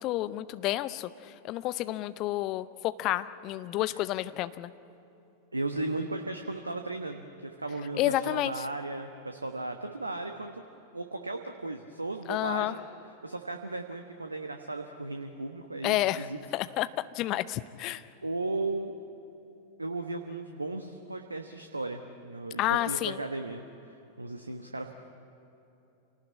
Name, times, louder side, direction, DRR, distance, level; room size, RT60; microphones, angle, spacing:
voice 1, 0.0-4.7 7.9-8.6 12.3-12.7 15.8-16.3 16.5-16.9 17.1-18.0 22.6-23.2, left 15 dB, 40° left, 14 dB, 0.8 m, -30 dB
voice 2, 5.5-10.6 10.9-12.8 13.2-16.4 18.2-18.9 19.8-24.9, right 2 dB, 80° right, 5 dB, 1.2 m, -36 dB
28.0 x 18.5 x 8.6 m, 3.0 s
figure-of-eight pair, 90°, 0 cm